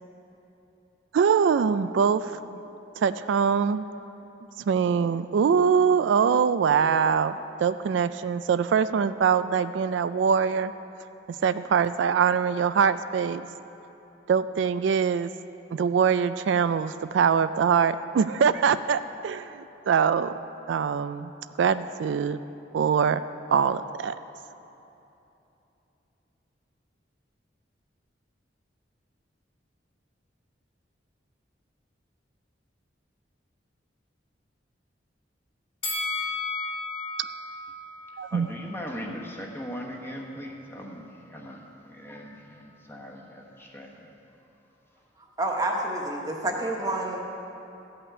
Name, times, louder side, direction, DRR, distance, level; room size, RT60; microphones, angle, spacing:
voice 1, 1.1-2.6 3.0-3.9 4.7-10.7 11.4-13.5 14.3-15.3 15.7-20.4 20.7-21.3 21.6-22.4 22.7-23.2 23.5-24.1 38.2-38.5, right 6 dB, 80° right, 13 dB, 0.3 m, -23 dB
Bell, 35.8-39.0 39.4-39.5, left 3 dB, 30° left, 1.2 m, -34 dB
voice 2, 38.3-44.1, equal, 15° left, -1 dB, 1.1 m, -39 dB
voice 3, 45.4-47.2, right 1 dB, 20° right, 0 dB, 1.2 m, -28 dB
13.5 x 5.8 x 8.4 m, 3.0 s
head